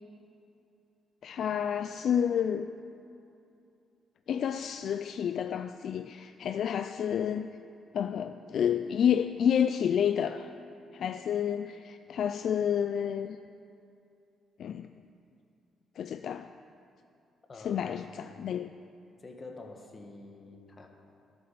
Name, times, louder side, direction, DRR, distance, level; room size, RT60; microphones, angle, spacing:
voice 1, 1.2-2.7 4.3-7.5 7.9-10.5 10.9-13.4 14.6-14.9 16.0-16.5 17.6-18.7, left 8 dB, 65° left, 9 dB, 0.3 m, -29 dB
voice 2, 17.5-18.1 19.2-20.9, left 3 dB, 35° left, 2 dB, 1.8 m, -47 dB
11.5 x 8.7 x 6.8 m, 2.6 s
cardioid pair, 90°, 0 cm